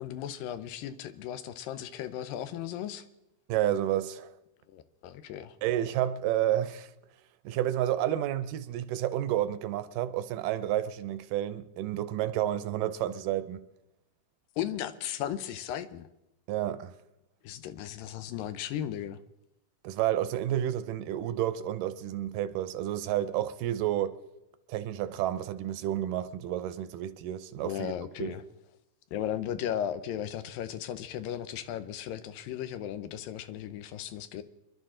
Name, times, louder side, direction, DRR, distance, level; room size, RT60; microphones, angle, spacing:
voice 1, 0.0-3.0 4.7-5.6 14.6-16.1 17.4-19.2 27.6-28.4 29.1-34.4, left 10 dB, 85° left, 2.4 m, -36 dB
voice 2, 3.5-4.3 5.6-6.9 7.5-13.6 16.5-16.9 19.8-24.2 24.7-27.9 28.2-28.4, right 12 dB, 80° right, 2.2 m, -30 dB
26.0 x 11.5 x 3.8 m
omnidirectional pair, 4.0 m